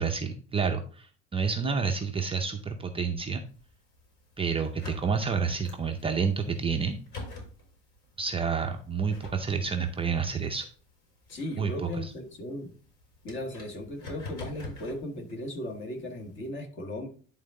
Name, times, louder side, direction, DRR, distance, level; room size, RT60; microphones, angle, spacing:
voice 1, 0.0-3.4 4.4-7.0 8.2-10.7 11.6-11.9, right 5 dB, 20° right, 4 dB, 0.5 m, -29 dB
sound 1, 3.5-16.5, left 2 dB, 60° left, 4.1 m, -48 dB
voice 2, 11.3-12.7 13.2-17.1, left 1 dB, 40° left, 4 dB, 1.7 m, -37 dB
10.5 x 3.9 x 3.7 m, 0.43 s
cardioid pair, 155°, 30 cm